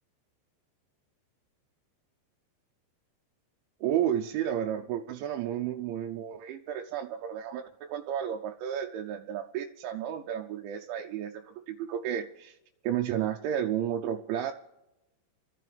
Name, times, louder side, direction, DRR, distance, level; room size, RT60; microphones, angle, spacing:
voice 1, 3.8-12.6 12.8-14.5, right 10 dB, 85° right, 2 dB, 3.1 m, -32 dB
28.0 x 12.5 x 3.4 m, 0.94 s
omnidirectional pair, 5.3 m